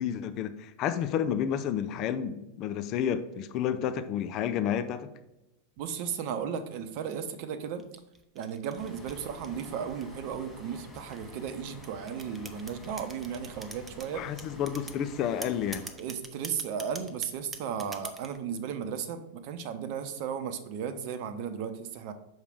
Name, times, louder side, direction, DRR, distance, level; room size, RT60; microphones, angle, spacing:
voice 1, 0.0-5.1 14.1-15.9, left 9 dB, 40° left, 11 dB, 0.4 m, -30 dB
voice 2, 5.8-7.8 8.3-14.2 16.0-22.1, right 7 dB, 45° right, 9 dB, 0.7 m, -35 dB
sound 1, 7.8-10.3 10.9-14.1 14.4-15.0 15.4-18.4, right 3 dB, 10° right, 0.7 m, -43 dB
sound 2, 8.7-15.9, left 1 dB, 10° left, 2.9 m, -49 dB
6.4 x 5.0 x 4.9 m, 0.93 s
figure-of-eight pair, 90°, 0 cm